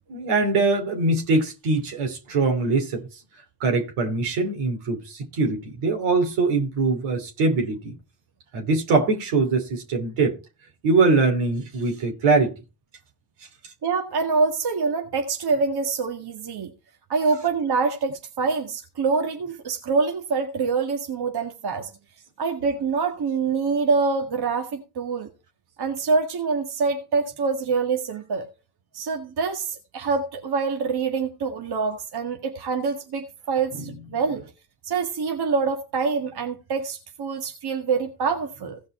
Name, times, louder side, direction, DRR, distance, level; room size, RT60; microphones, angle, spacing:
voice 1, 0.1-3.0 3.6-7.9 8.5-10.4 10.8-12.5, right 3 dB, 80° right, 3.0 m, -22 dB
voice 2, 13.8-16.7 17.1-21.9 22.4-25.3 25.8-28.5 28.9-34.4 34.9-38.8, right 4 dB, 50° right, 1.9 m, -25 dB
16.5 x 5.6 x 4.3 m
supercardioid pair, 60°, 49 cm